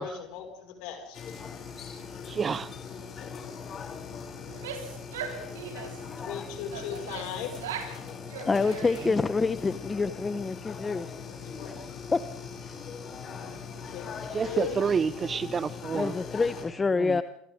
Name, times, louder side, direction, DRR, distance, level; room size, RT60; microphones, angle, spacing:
voice 1, 0.0-1.2 6.2-7.6 11.3-11.8 13.7-14.1 14.4-14.8, left 8 dB, 55° left, 5.7 m, -38 dB
sound 1, 1.1-16.7, left 6 dB, 40° left, 7.1 m, -41 dB
voice 2, 2.3-2.7 14.3-16.1 17.0-17.2, right 6 dB, 30° right, 0.8 m, -28 dB
Female speech woman speaking / Yell, 4.4-6.1 6.7-8.0 8.3-9.3, right 7 dB, 70° right, 4.3 m, -39 dB
voice 3, 6.1-6.5 8.5-11.1 12.1-12.2 15.9-17.2, left 4 dB, 20° left, 1.0 m, -27 dB
27.5 x 27.0 x 3.8 m
figure-of-eight pair, 70°, 0 cm